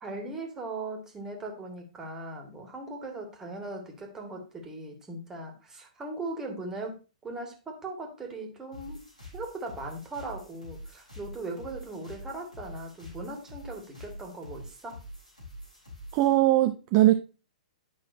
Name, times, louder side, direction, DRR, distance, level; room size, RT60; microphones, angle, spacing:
voice 1, 0.0-9.1 9.3-15.0, right 2 dB, 15° right, 1.9 m, -39 dB
sound 1, 8.7-16.3, equal, 90° left, 3.8 m, -46 dB
voice 2, 16.1-17.1, right 15 dB, 35° right, 0.5 m, -20 dB
10.0 x 5.5 x 2.7 m
figure-of-eight pair, 115°, 4 cm